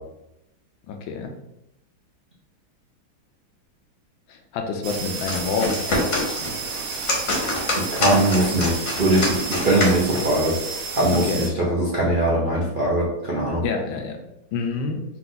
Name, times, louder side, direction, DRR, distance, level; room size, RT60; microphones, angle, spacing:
voice 1, 0.9-1.3 4.3-6.5 11.1-11.4 13.6-14.2 14.5-15.0, left 5 dB, 75° left, 3 dB, 1.3 m, -28 dB
sound 1, 4.8-11.5, right 5 dB, 90° right, 1.5 m, -32 dB
sound 2, 5.1-10.3, left 2 dB, 45° left, 1.1 m, -26 dB
voice 2, 8.0-10.6 10.9-13.6, right 1 dB, 65° right, -7 dB, 0.5 m, -21 dB
4.5 x 2.5 x 3.8 m, 0.85 s
omnidirectional pair, 2.3 m